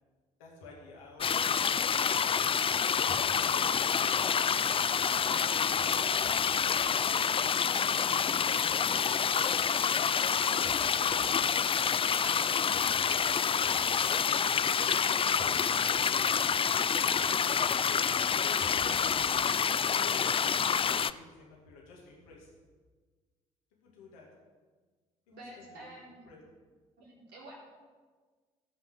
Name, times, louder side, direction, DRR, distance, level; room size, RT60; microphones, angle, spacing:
voice 1, 0.4-1.9 2.8-4.2 5.2-9.4 9.8-11.7 12.3-14.7 15.2-17.6 18.1-22.5 23.8-24.3 25.4-25.9 26.3-26.4, left 2 dB, 80° left, -2 dB, 2.4 m, -51 dB
sound 1, 1.2-21.1, left 7 dB, 30° left, 0.4 m, -28 dB
voice 2, 3.6-4.1 5.1-5.2 5.7-5.9 25.3-26.3 27.0-27.5, right 1 dB, 70° right, -4 dB, 4.1 m, -50 dB
16.5 x 5.6 x 6.8 m, 1.4 s
hypercardioid pair, 45°, 18 cm